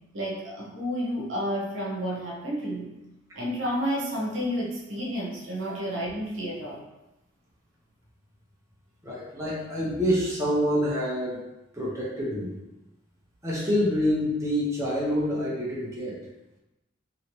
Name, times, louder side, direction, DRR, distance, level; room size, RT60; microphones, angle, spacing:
voice 1, 0.1-2.9 3.3-6.8, equal, 90° right, -3 dB, 0.8 m, -30 dB
voice 2, 9.0-11.4 11.7-12.5 13.4-16.2, equal, 15° right, -6 dB, 0.7 m, -27 dB
2.9 x 2.8 x 2.9 m, 0.96 s
head